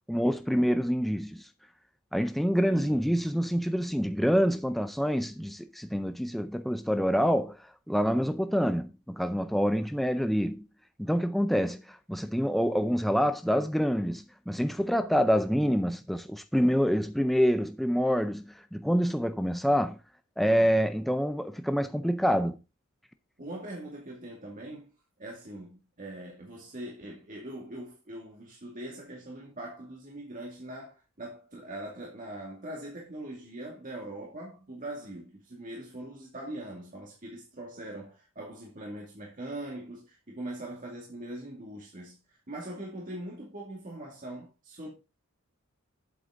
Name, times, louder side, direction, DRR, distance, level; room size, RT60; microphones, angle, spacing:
voice 1, 0.1-1.5 2.1-7.6 7.9-10.7 11.0-20.0 20.4-22.6, equal, ahead, 0.4 m, -26 dB
voice 2, 2.7-3.2 20.4-20.7 23.4-24.9 25.2-42.2 42.5-44.9, right 1 dB, 35° right, 2.3 m, -42 dB
8.1 x 7.8 x 3.8 m
head